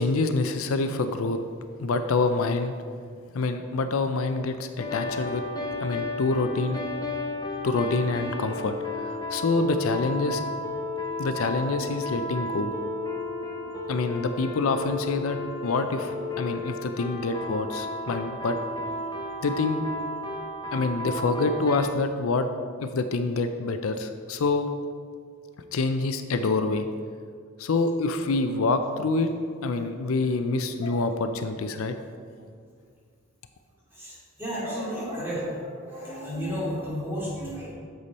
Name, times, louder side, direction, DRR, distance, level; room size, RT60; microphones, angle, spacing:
voice 1, 0.0-1.4 1.8-2.7 3.3-5.4 5.8-6.8 7.6-10.4 11.2-12.7 13.9-18.6 19.4-19.8 20.7-22.5 22.8-24.7 25.7-26.9 27.6-31.9, left 3 dB, 75° left, 8 dB, 0.5 m, -26 dB
sound 1, 4.8-21.8, left 2 dB, 20° left, 0.8 m, -33 dB
sound 2, 29.1-29.2 30.8-31.7 34.5-36.2, left 1 dB, 40° left, 2.4 m, -40 dB
voice 2, 33.9-35.5 35.9-37.7, equal, 10° right, -7 dB, 2.3 m, -33 dB
8.1 x 6.9 x 4.2 m, 2.1 s
head